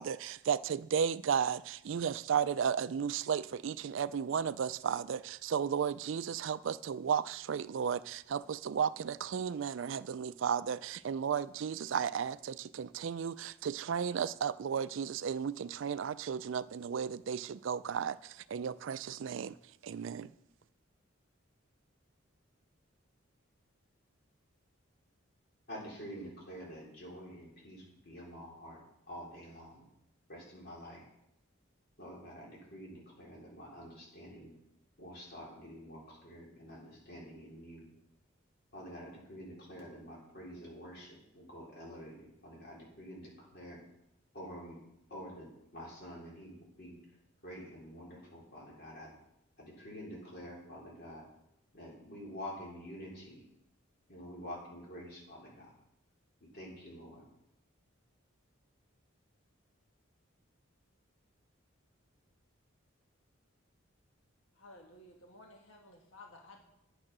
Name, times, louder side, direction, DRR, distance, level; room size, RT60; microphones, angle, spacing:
voice 1, 0.0-19.6 19.8-20.3, right 7 dB, 65° right, 0.4 m, -34 dB
voice 2, 25.7-28.8 29.1-29.9 30.3-31.0 32.0-34.5 35.0-37.9 38.7-43.8 44.3-44.8 45.1-47.0 47.4-49.1 49.6-51.2 51.7-53.4 54.1-55.7 56.5-57.2, equal, 50° left, 4.0 m, -48 dB
voice 3, 64.6-66.6, left 2 dB, 75° left, 1.4 m, -55 dB
9.7 x 9.1 x 6.1 m
head